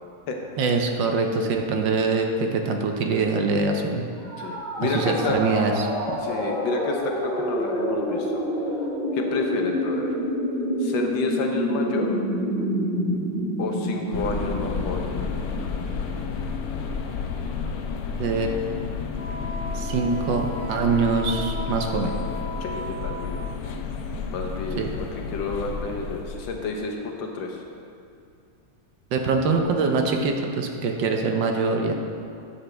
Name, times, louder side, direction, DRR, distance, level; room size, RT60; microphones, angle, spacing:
voice 1, 0.6-4.0 4.8-5.9 18.2-18.6 19.7-22.1 24.8-24.9 29.1-31.9, right 4 dB, 75° right, 3 dB, 1.5 m, -24 dB
sound 1, 4.2-16.0, equal, ahead, 2.0 m, -28 dB
voice 2, 4.4-5.4 6.2-8.4 9.1-10.2 10.8-12.2 13.6-15.1 22.6-23.4 24.3-24.9 25.3-27.6, left 4 dB, 80° left, 2 dB, 1.7 m, -30 dB
sound 2, 14.1-26.8, left 5 dB, 65° left, 1.0 m, -31 dB
Wind instrument woodwind instrument, 19.1-23.6, left 1 dB, 30° left, 1.5 m, -36 dB
12.5 x 7.2 x 3.4 m, 2.5 s
omnidirectional pair, 2.1 m